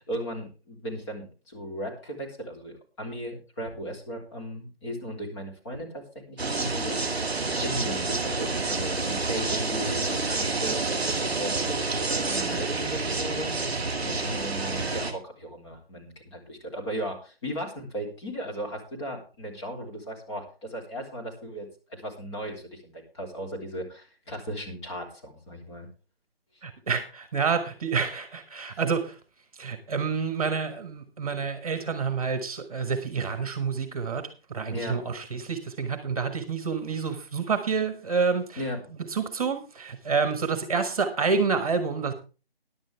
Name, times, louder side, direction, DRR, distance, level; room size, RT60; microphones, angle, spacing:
voice 1, 0.1-13.5 14.0-25.9 34.7-35.0 38.6-38.9, equal, 30° left, 0 dB, 3.4 m, -36 dB
sound 1, 6.4-15.1, right 3 dB, ahead, 0.6 m, -28 dB
voice 2, 26.6-29.2 29.6-38.6 39.1-42.1, right 5 dB, 35° right, 10 dB, 1.4 m, -28 dB
15.0 x 10.5 x 3.4 m, 0.33 s
figure-of-eight pair, 160°, 30 cm